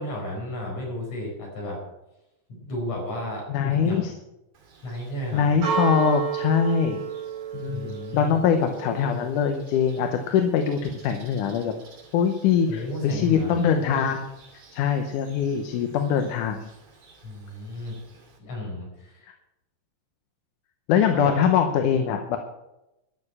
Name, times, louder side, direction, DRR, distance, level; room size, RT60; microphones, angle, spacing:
voice 1, 0.0-1.8 2.5-3.4 3.8-4.1 4.8-5.5 7.7-8.4 12.7-13.5 17.2-18.0 18.4-19.3 21.1-21.3, left 1 dB, 65° left, -1 dB, 6.2 m, -33 dB
voice 2, 3.5-4.1 5.3-7.0 7.5-11.7 12.1-14.3 14.7-16.7 20.9-22.4, left 7 dB, 85° left, 5 dB, 2.4 m, -23 dB
Church bell, 4.6-18.4, right 7 dB, 70° right, 4.1 m, -36 dB
13.5 x 6.8 x 8.6 m, 0.94 s
omnidirectional pair, 3.5 m